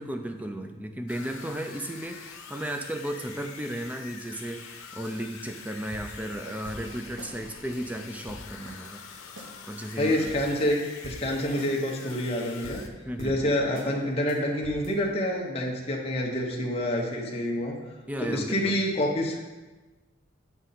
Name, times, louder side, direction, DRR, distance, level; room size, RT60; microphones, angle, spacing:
voice 1, 0.0-9.0 9.6-10.2 13.0-13.4 18.1-18.8, right 1 dB, 5° right, 6 dB, 0.4 m, -35 dB
sound 1, 1.1-12.9, left 6 dB, 85° left, 0.8 m, -45 dB
sound 2, 5.0-5.2 5.6-5.7 5.9-7.3 7.7-7.8 8.1-8.9 9.4-9.5 9.9-10.0 10.3-10.8 11.0-11.7 12.1-12.2 12.5-13.9 14.3-14.4 14.6-14.9, equal, 70° right, 1.1 m, -45 dB
voice 2, 10.0-12.8 13.2-17.8 18.2-19.5, left 1 dB, 30° left, -2 dB, 0.9 m, -27 dB
8.0 x 5.0 x 4.2 m, 1.2 s
head